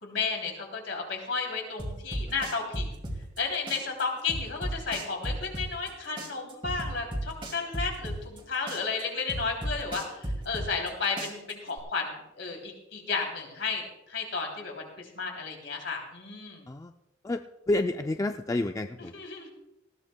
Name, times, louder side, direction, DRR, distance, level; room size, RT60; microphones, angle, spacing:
voice 1, 0.0-3.0 3.4-16.7 19.0-19.5, left 4 dB, 65° left, 1 dB, 3.0 m, -33 dB
sound 1, 1.8-3.4 3.7-5.9 6.2-8.4 8.7-10.9 11.2-11.8, right 1 dB, 30° right, 2.3 m, -34 dB
voice 2, 17.7-19.1, left 2 dB, 15° left, 6 dB, 0.3 m, -29 dB
19.0 x 15.0 x 2.2 m, 0.91 s
head